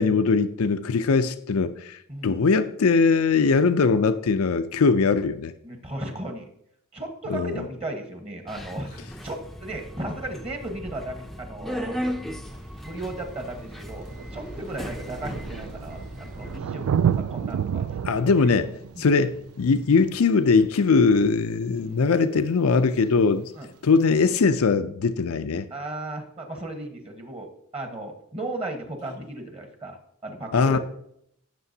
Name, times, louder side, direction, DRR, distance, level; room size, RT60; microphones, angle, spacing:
voice 1, 0.0-5.5 7.3-7.6 18.0-23.5 23.8-25.7 30.5-30.8, left 4 dB, 80° left, 0.5 m, -21 dB
voice 2, 2.1-2.5 5.6-6.5 6.9-12.0 12.8-17.8 18.9-19.1 21.7-22.0 23.6-23.7 25.7-27.5 27.7-30.0 30.2-30.8, right 1 dB, 25° right, 1.3 m, -35 dB
Subway metro underground, 8.5-16.6, equal, ahead, 0.5 m, -36 dB
Thunder, 12.5-12.6 13.6-13.7 13.9-21.2 22.9-23.0, right 8 dB, 85° right, 0.3 m, -30 dB
15.5 x 6.7 x 2.8 m
head